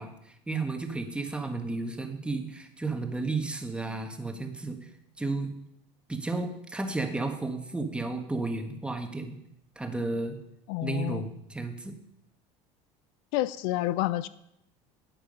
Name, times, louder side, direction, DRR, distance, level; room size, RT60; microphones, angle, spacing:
voice 1, 0.0-4.9 5.2-5.6 6.1-9.4 9.7-10.4 10.8-12.0, right 3 dB, 5° right, 5 dB, 1.5 m, -33 dB
voice 2, 10.7-11.3 13.3-14.3, left 15 dB, 75° left, 16 dB, 0.5 m, -29 dB
13.0 x 8.9 x 5.3 m, 0.78 s
supercardioid pair, 130°, 15 cm